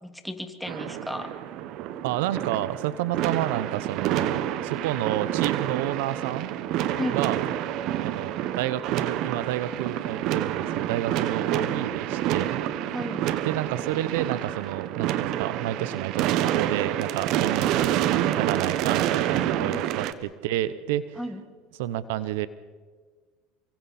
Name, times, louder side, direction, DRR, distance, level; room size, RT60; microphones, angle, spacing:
voice 1, 0.0-1.3 6.9-7.3 11.5-11.8 12.9-13.3 19.6-19.8 21.2-21.4, left 1 dB, 5° left, 6 dB, 2.4 m, -34 dB
sound 1, 0.7-20.1, right 12 dB, 65° right, 1.2 m, -28 dB
voice 2, 2.0-6.5 7.1-7.4 8.0-12.6 13.4-21.2 21.8-22.5, right 13 dB, 80° right, 15 dB, 0.9 m, -30 dB
28.5 x 24.5 x 4.3 m, 1.5 s
supercardioid pair, 95°, 0 cm